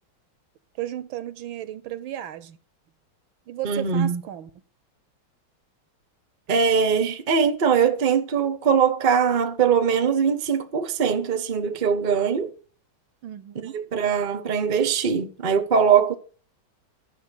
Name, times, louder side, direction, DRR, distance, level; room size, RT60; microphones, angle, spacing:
voice 1, 0.8-2.6 3.5-4.5 13.2-13.8, right 12 dB, 75° right, 1.5 m, -34 dB
voice 2, 3.6-4.2 6.5-12.5 13.6-16.1, right 6 dB, 35° right, 0.8 m, -21 dB
12.0 x 5.9 x 8.2 m
omnidirectional pair, 2.3 m